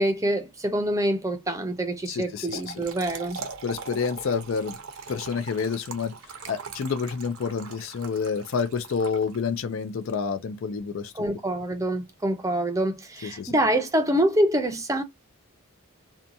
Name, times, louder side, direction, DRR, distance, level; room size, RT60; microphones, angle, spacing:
voice 1, 0.0-3.4 11.1-15.0, right 1 dB, 15° right, 0.5 m, -25 dB
voice 2, 2.1-2.7 3.6-4.8 5.1-6.1 6.5-11.1 13.2-13.6, left 5 dB, 60° left, 0.4 m, -28 dB
Trickle dribble / Fill (with liquid), 2.2-9.7, right 5 dB, 70° right, 0.7 m, -41 dB
2.8 x 2.2 x 2.5 m
head